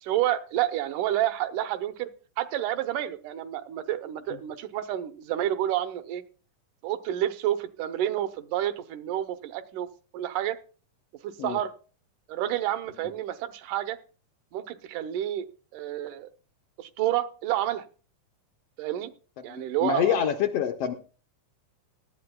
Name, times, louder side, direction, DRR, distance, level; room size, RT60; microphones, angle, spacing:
voice 1, 0.0-2.1 2.4-6.2 6.8-9.9 10.1-10.6 11.2-11.7 12.3-14.0 14.5-16.3 16.8-17.9 18.8-19.1 19.4-20.1, right 12 dB, 85° right, 11 dB, 2.3 m, -29 dB
voice 2, 19.5-20.9, left 8 dB, 75° left, 6 dB, 1.5 m, -26 dB
17.5 x 12.0 x 2.2 m, 0.37 s
omnidirectional pair, 3.5 m